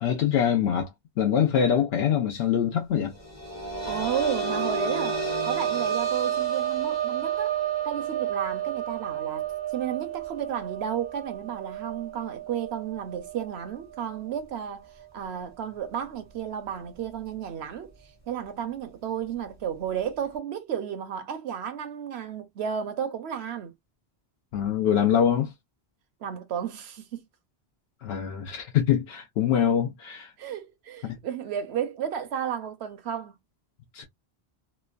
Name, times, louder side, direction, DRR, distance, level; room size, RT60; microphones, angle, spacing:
voice 1, 0.0-0.9 1.2-3.1 24.5-25.5 28.0-30.3 31.0-31.2 33.9-34.0, left 9 dB, 75° left, 0.8 m, -24 dB
sound 1, 3.2-14.7 15.0-15.1 16.6-16.7, right 7 dB, 15° left, 0.7 m, -31 dB
voice 2, 3.9-23.7 26.2-27.2 30.4-33.3, right 8 dB, 80° right, 0.9 m, -33 dB
3.0 x 2.1 x 2.3 m
omnidirectional pair, 1.1 m